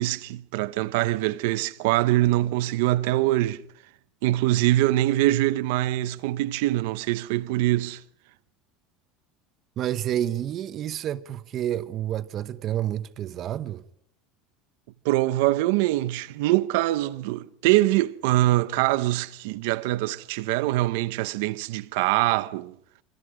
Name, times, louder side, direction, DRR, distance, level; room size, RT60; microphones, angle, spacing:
voice 1, 0.0-3.6 4.2-8.0 15.0-22.8, right 16 dB, 75° right, 0.9 m, -23 dB
voice 2, 9.8-13.8, right 11 dB, 35° right, 0.9 m, -29 dB
25.5 x 25.5 x 5.0 m
cardioid pair, 165°, 0 cm